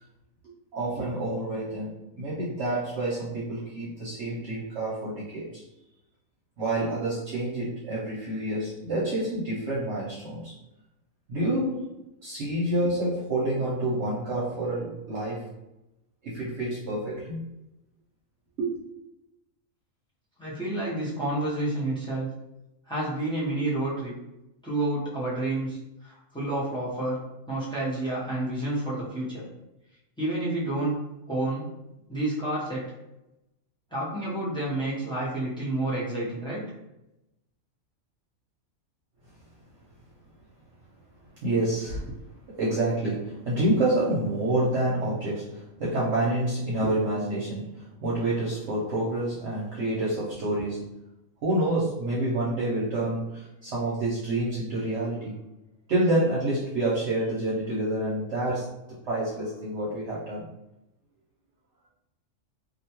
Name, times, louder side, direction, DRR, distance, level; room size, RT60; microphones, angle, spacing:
voice 1, 0.7-5.6 6.6-10.6 11.3-11.9 12.2-15.5 16.2-17.4 18.6-18.7 41.4-42.2 42.5-50.9 51.4-55.4 55.9-58.7 59.1-60.5, right 1 dB, 60° right, -7 dB, 0.9 m, -28 dB
voice 2, 20.4-22.3 22.9-24.1 24.6-27.2 27.5-29.4 30.2-31.0 31.3-31.7 32.1-32.8 33.9-36.6, right 2 dB, 5° left, -8 dB, 0.5 m, -29 dB
2.6 x 2.2 x 2.9 m, 0.90 s
omnidirectional pair, 1.4 m